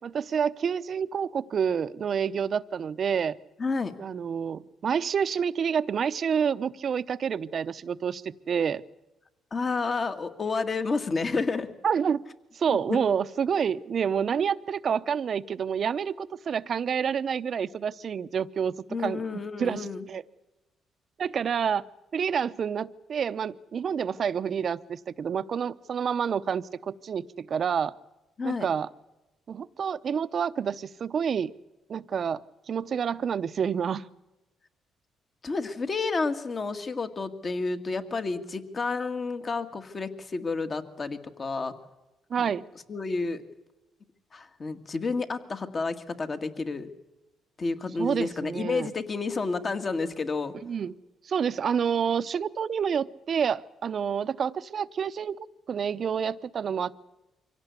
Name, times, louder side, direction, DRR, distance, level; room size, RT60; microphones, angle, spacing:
voice 1, 0.0-3.4 4.0-8.8 11.8-12.2 12.5-20.2 21.2-21.8 22.1-28.0 28.4-28.9 29.5-31.5 31.9-32.4 32.7-34.0 42.3-42.7 48.0-48.9 50.6-50.9 51.2-55.4 55.7-57.0, right 7 dB, 55° right, 14 dB, 0.8 m, -28 dB
voice 2, 3.6-3.9 9.5-11.7 12.9-13.0 18.9-20.0 28.4-28.7 35.4-41.7 42.9-43.4 44.3-46.9 47.6-50.5, left 4 dB, 40° left, 8 dB, 1.9 m, -30 dB
24.5 x 17.0 x 8.2 m, 1.0 s
cardioid pair, 90°, 0 cm